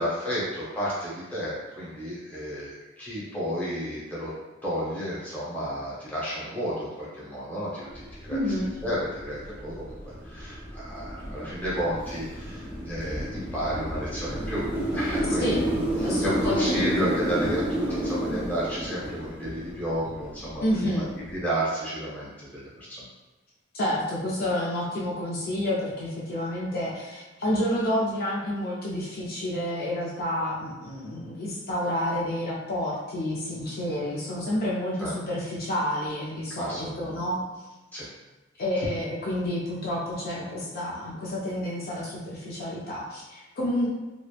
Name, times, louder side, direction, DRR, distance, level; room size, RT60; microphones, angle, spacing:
voice 1, 0.0-4.3 4.6-8.4 8.8-14.6 14.9-15.7 16.0-21.1 21.3-23.1 35.0-35.1 36.6-37.3 37.9-38.1, equal, 10° left, -8 dB, 0.8 m, -32 dB
sound 1, 7.9-21.4, right 1 dB, 10° right, 0.4 m, -31 dB
voice 2, 8.3-8.7 15.4-17.1 20.6-21.1 23.7-37.4 38.6-43.9, left 1 dB, 50° left, -6 dB, 0.4 m, -29 dB
2.9 x 2.0 x 2.3 m, 1.2 s
head